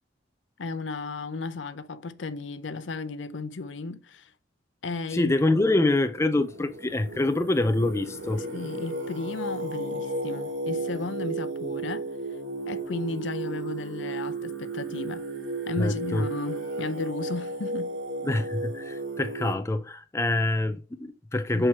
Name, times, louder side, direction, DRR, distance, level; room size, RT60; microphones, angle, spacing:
voice 1, 0.6-4.3 4.8-5.3 8.4-12.1 12.7-15.2 15.7-17.9 21.5-21.7, left 3 dB, 80° left, 0.6 m, -34 dB
voice 2, 5.1-8.4 15.8-16.3 18.2-21.7, left 2 dB, 15° left, 0.4 m, -25 dB
Singing, 5.7-19.5, right 2 dB, 75° right, 2.2 m, -34 dB
6.3 x 4.5 x 4.6 m
head